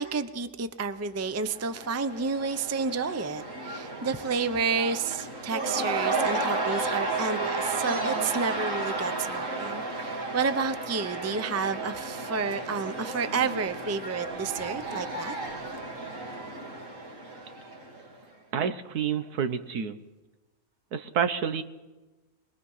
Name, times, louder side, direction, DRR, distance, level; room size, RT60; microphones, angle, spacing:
voice 1, 0.0-15.3, right 5 dB, 20° right, 11 dB, 0.5 m, -30 dB
Cheering / Crowd, 1.3-18.2, right 3 dB, 55° right, 2.9 m, -33 dB
voice 2, 18.5-20.0 20.9-21.6, right 7 dB, 80° right, 10 dB, 1.6 m, -28 dB
24.5 x 21.0 x 5.6 m, 1.1 s
omnidirectional pair, 1.6 m